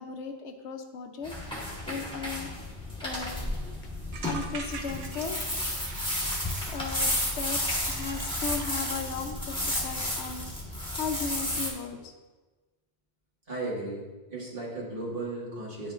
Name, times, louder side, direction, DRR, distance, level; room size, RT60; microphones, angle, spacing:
voice 1, 0.0-2.5 3.0-3.5 4.2-5.4 6.7-10.5 11.0-12.1, left 5 dB, 85° left, 5 dB, 1.0 m, -36 dB
sound 1, 1.2-11.7, left 1 dB, 5° left, 1.4 m, -32 dB
sound 2, 2.7-2.8 3.0-3.1 3.4-3.6 4.1-9.0, right 4 dB, 70° right, 0.9 m, -43 dB
voice 2, 13.5-15.9, right 2 dB, 50° right, -5 dB, 2.0 m, -35 dB
10.5 x 5.1 x 2.5 m, 1.2 s
omnidirectional pair, 1.1 m